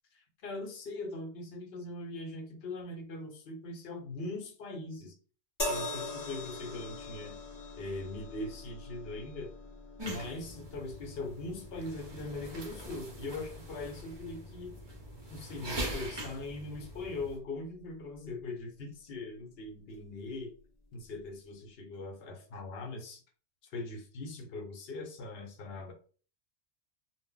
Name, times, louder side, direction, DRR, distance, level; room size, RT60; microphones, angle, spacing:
voice 1, 0.1-5.1 5.7-7.4 7.8-9.5 10.1-14.8 15.3-20.5 20.9-23.2 23.7-25.9, left 2 dB, 60° left, 3 dB, 0.9 m, -41 dB
sound 1, 5.6-18.9 19.9-20.1, left 2 dB, 25° left, 0.4 m, -44 dB
sound 2, 10.0-17.4, equal, 35° right, 0.4 m, -42 dB
2.1 x 2.1 x 3.7 m, 0.39 s
omnidirectional pair, 1.2 m